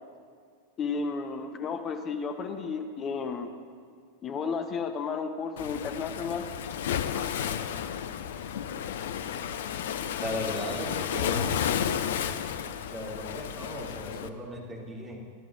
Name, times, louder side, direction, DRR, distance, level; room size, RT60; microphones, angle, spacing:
voice 1, 0.8-3.5 4.2-6.4 7.1-7.5, left 5 dB, 30° left, 6 dB, 1.0 m, -33 dB
Waves surf, 5.6-14.3, left 9 dB, 60° left, 0.6 m, -32 dB
voice 2, 10.2-11.6 12.9-15.2, equal, 20° right, -2 dB, 2.7 m, -36 dB
28.5 x 12.5 x 2.6 m, 2.1 s
figure-of-eight pair, 90°, 0 cm